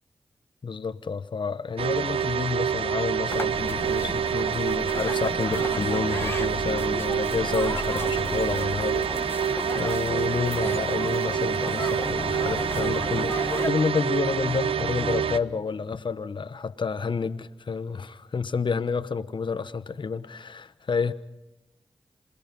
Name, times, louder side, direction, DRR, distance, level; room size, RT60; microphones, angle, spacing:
voice 1, 0.6-21.1, left 5 dB, 60° left, 1.0 m, -29 dB
sound 1, 1.8-15.4, right 8 dB, 85° right, 0.7 m, -27 dB
sound 2, 3.3-13.7, left 2 dB, 25° left, 1.2 m, -35 dB
Bowed string instrument, 11.4-16.0, equal, ahead, 5.6 m, -37 dB
27.5 x 19.5 x 5.4 m
cardioid pair, 45°, 9 cm